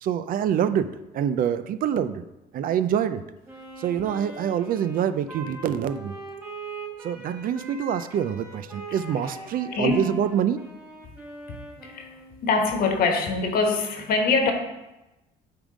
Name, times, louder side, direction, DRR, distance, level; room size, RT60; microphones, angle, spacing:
voice 1, 0.0-0.9 1.1-2.3 2.5-3.2 3.8-6.1 7.0-10.6, right 9 dB, 55° right, 11 dB, 0.4 m, -25 dB
Wind instrument woodwind instrument, 3.5-12.4, right 3 dB, 15° right, 2.1 m, -41 dB
voice 2, 11.5-12.1 12.4-14.5, left 4 dB, 60° left, 4 dB, 1.3 m, -24 dB
8.9 x 3.6 x 5.0 m, 0.98 s
cardioid pair, 110°, 17 cm